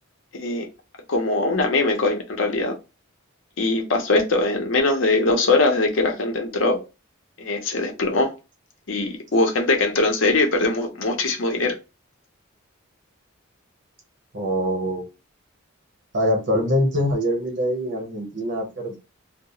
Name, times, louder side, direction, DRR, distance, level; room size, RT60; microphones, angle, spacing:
voice 1, 0.3-0.7 1.1-2.8 3.6-6.8 7.4-8.3 8.9-11.7, left 2 dB, 65° left, 0.6 m, -21 dB
voice 2, 14.3-15.0 16.1-19.0, equal, 60° right, 0.9 m, -23 dB
2.3 x 2.0 x 2.9 m
head